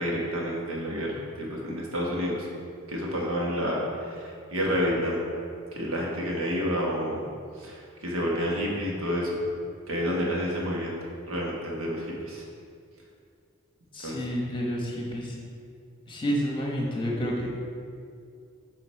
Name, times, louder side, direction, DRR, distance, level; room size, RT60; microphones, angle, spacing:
voice 1, 0.0-2.5 2.9-5.2 5.7-7.2 7.6-9.3 9.9-10.9 11.3-12.4 14.0-14.2, equal, 75° right, -3 dB, 1.3 m, -29 dB
voice 2, 13.9-15.4 16.1-17.5, equal, 20° left, -2 dB, 0.9 m, -29 dB
7.3 x 3.9 x 4.5 m, 2.3 s
head